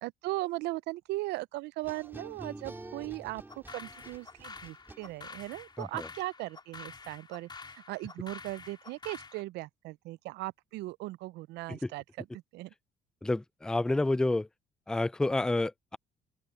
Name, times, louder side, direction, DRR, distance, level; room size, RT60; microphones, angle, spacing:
voice 1, 0.0-12.7, right 19 dB, 85° right, 0.5 m, -38 dB
sound 1, 1.8-5.5, right 2 dB, 10° right, 1.9 m, -48 dB
sound 2, 3.5-9.4, left 4 dB, 25° left, 4.0 m, -48 dB
voice 2, 13.2-14.5 14.9-16.0, left 2 dB, 5° left, 0.4 m, -29 dB
open air
cardioid pair, 110°, 17 cm